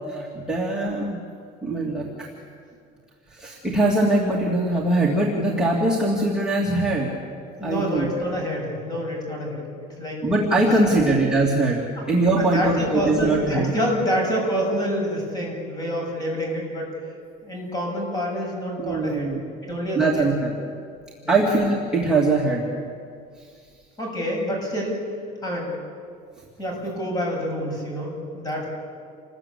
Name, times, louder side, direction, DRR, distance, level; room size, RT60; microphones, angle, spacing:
voice 1, 0.1-1.2 1.6-2.3 3.3-7.1 7.6-8.1 10.2-13.7 18.8-19.5 20.0-20.5 21.3-22.6, right 2 dB, 5° right, -5 dB, 2.5 m, -22 dB
voice 2, 7.6-10.3 10.6-11.1 12.0-12.1 12.4-16.9 17.4-19.3 19.6-20.2 21.2-21.4 24.0-25.0 25.4-25.7 26.6-28.7, equal, 20° left, 0 dB, 7.5 m, -27 dB
28.0 x 20.5 x 8.6 m, 2.2 s
cardioid pair, 165°, 18 cm